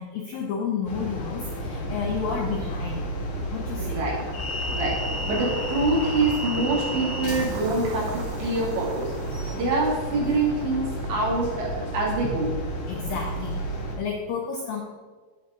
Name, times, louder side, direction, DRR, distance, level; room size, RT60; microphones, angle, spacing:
voice 1, 0.0-3.0 3.5-4.1 12.9-14.8, left 6 dB, 85° left, 1 dB, 2.0 m, -31 dB
sound 1, 0.8-13.9, equal, 60° left, 1.6 m, -31 dB
voice 2, 3.8-4.2 4.7-5.0 5.3-9.1 9.5-12.5, right 2 dB, 65° right, -4 dB, 4.9 m, -25 dB
sound 2, 4.0-12.2, right 6 dB, 80° right, 3.3 m, -39 dB
11.0 x 9.3 x 3.9 m, 1.5 s
omnidirectional pair, 5.7 m